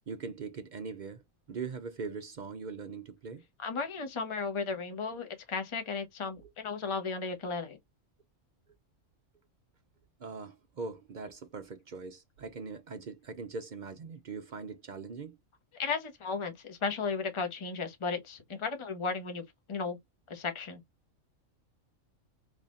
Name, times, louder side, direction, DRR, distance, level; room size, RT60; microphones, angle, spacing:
voice 1, 0.1-1.2 1.5-3.4 6.4-6.5 10.2-15.4, right 4 dB, 55° right, 0.5 m, -41 dB
voice 2, 3.6-7.8 15.8-19.4 19.7-20.0 20.3-20.8, left 5 dB, 25° left, 0.9 m, -35 dB
4.0 x 3.0 x 2.5 m
omnidirectional pair, 1.4 m